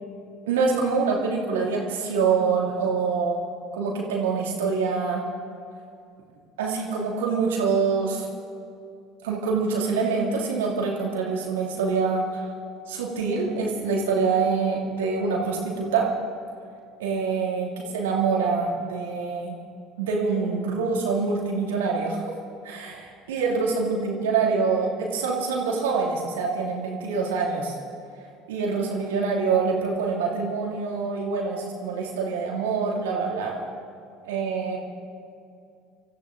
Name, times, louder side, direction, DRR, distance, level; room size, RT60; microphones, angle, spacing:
voice 1, 0.5-3.4 3.7-5.2 6.6-8.3 9.2-12.4 12.9-16.1 17.0-19.5 20.0-22.2 22.6-27.7 28.5-33.5 34.2-34.8, right 5 dB, 80° right, -1 dB, 2.8 m, -25 dB
24.5 x 14.0 x 3.9 m, 2.4 s
hypercardioid pair, 65°, 0 cm